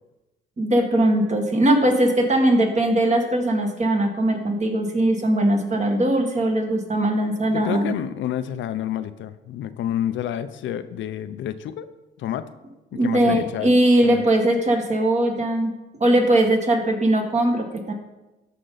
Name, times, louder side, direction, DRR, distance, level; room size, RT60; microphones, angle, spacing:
voice 1, 0.6-7.9 12.9-15.7 16.0-17.9, right 1 dB, 35° right, 2 dB, 1.9 m, -20 dB
voice 2, 7.5-11.9 12.2-12.4 12.9-13.7 14.0-14.3, left 10 dB, 75° left, 11 dB, 0.6 m, -29 dB
13.0 x 5.4 x 3.9 m, 1.0 s
cardioid pair, 90°, 20 cm